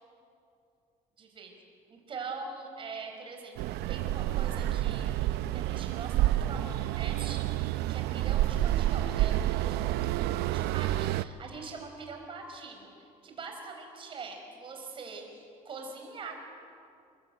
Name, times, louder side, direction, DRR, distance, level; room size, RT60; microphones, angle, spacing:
voice 1, 1.2-1.5 1.9-10.2 10.5-16.4, right 4 dB, 30° right, 3 dB, 5.5 m, -43 dB
sound 1, 3.6-11.2, right 14 dB, 85° right, 0.7 m, -29 dB
29.5 x 21.5 x 9.1 m, 2.5 s
cardioid pair, 165°, 16 cm